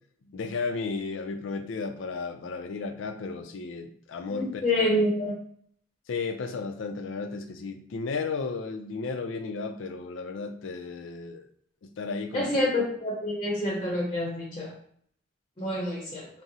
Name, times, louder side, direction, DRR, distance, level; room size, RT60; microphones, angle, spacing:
voice 1, 0.3-4.9 6.1-11.5 11.8-12.6, left 4 dB, 75° left, 8 dB, 0.4 m, -34 dB
voice 2, 4.3-5.3 12.3-14.7 15.6-16.3, left 1 dB, 25° left, -3 dB, 0.6 m, -27 dB
3.6 x 2.0 x 2.7 m, 0.62 s
head